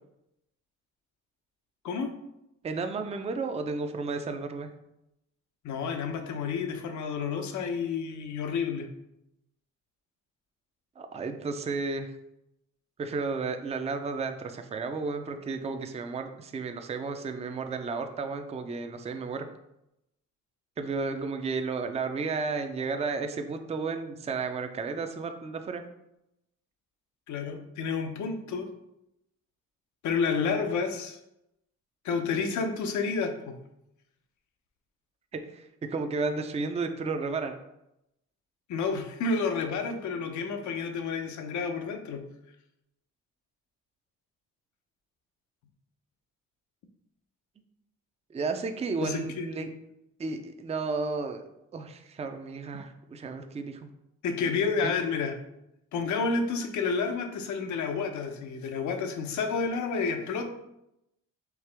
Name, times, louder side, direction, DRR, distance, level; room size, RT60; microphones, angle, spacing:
voice 1, 2.6-4.7 11.0-12.1 13.0-19.5 20.8-25.8 35.3-35.7 35.9-37.5 48.3-49.7 50.2-51.4 51.7-53.9 54.8-54.9, right 4 dB, 20° right, 7 dB, 0.4 m, -33 dB
voice 2, 5.6-8.9 27.3-28.7 30.0-31.2 32.0-33.6 38.7-42.2 49.0-49.5 54.2-55.3 55.9-60.5, left 5 dB, 75° left, 6 dB, 0.7 m, -30 dB
4.7 x 2.9 x 3.3 m, 0.84 s
cardioid pair, 90°, 30 cm